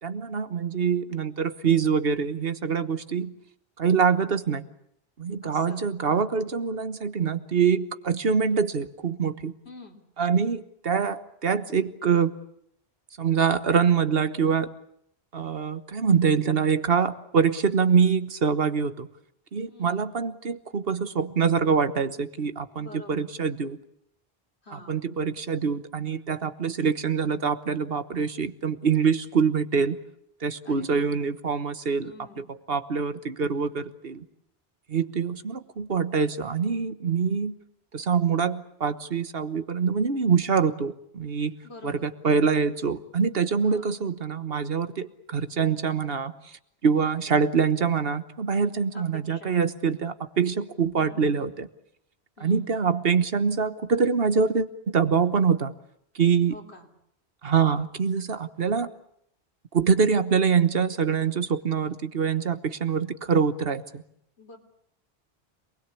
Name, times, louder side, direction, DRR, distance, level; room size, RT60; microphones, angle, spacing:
voice 1, 0.0-3.3 3.8-4.6 5.2-9.5 10.2-12.3 13.2-14.7 15.3-19.1 19.5-23.8 24.9-30.0 30.4-34.2 34.9-37.5 37.9-41.6 41.8-46.3 46.8-51.7 52.4-55.7 56.1-56.5 57.4-58.9 59.7-64.0, right 6 dB, 65° right, 12 dB, 1.4 m, -25 dB
voice 2, 5.4-6.3 9.6-10.0 19.7-20.1 22.7-23.3 24.6-25.1 30.7-31.1 32.0-32.5 41.6-42.1 43.6-44.0 48.9-49.6 51.0-51.7 52.4-52.8 56.5-56.9 64.4-64.6, left 2 dB, 85° left, 2 dB, 3.8 m, -47 dB
26.5 x 20.5 x 8.4 m, 0.74 s
omnidirectional pair, 1.1 m